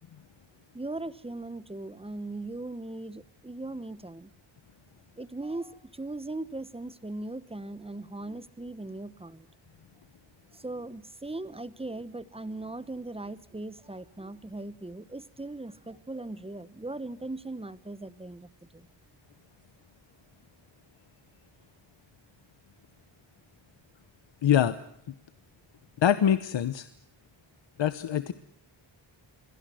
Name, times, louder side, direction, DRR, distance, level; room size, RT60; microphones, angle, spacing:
voice 1, 0.7-4.3 5.2-9.5 10.5-18.9, right 2 dB, 10° right, 16 dB, 1.1 m, -39 dB
voice 2, 24.4-24.8 26.0-26.9 27.8-28.3, left 9 dB, 70° left, 13 dB, 1.1 m, -24 dB
27.5 x 21.5 x 7.8 m, 0.73 s
wide cardioid pair, 105°, 46 cm